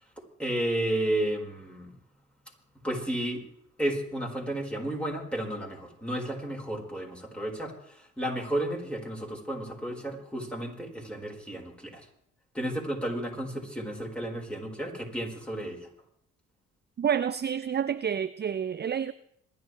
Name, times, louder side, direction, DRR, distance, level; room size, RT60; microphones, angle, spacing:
voice 1, 0.4-1.9 2.8-3.4 3.8-12.0 12.5-15.9, right 1 dB, 5° left, 4.7 m, -32 dB
voice 2, 17.0-19.1, right 8 dB, 30° right, 0.5 m, -29 dB
27.0 x 11.0 x 3.3 m
hypercardioid pair, 55°, 36 cm